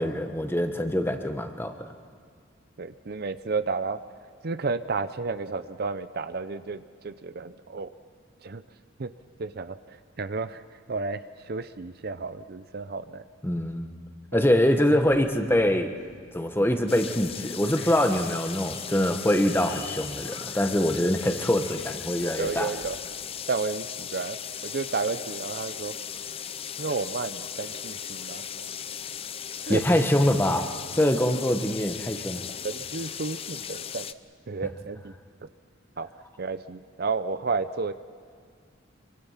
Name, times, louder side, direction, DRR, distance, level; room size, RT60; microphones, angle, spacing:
voice 1, 0.0-1.9 13.4-13.9 14.3-15.9 16.3-22.7 29.7-32.5, left 1 dB, 10° left, 6 dB, 1.3 m, -24 dB
voice 2, 2.8-4.0 4.4-7.9 8.4-8.6 9.0-9.1 9.4-10.6 10.9-13.2 14.3-14.4 19.0-19.1 22.4-23.0 23.5-24.4 24.6-26.0 26.8-28.7 29.7-29.8 32.6-34.1 34.5-35.1 35.4-35.5 36.0-36.1 36.4-37.9, right 4 dB, 55° right, 12 dB, 0.6 m, -32 dB
Livestock farm animals working animals, 14.6-15.2 15.5-16.2 16.6-22.2 22.4-22.9, left 4 dB, 55° left, 4.0 m, -48 dB
sound 1, 16.9-34.1, left 8 dB, 30° left, 0.5 m, -37 dB
26.0 x 24.0 x 5.8 m, 2.1 s
head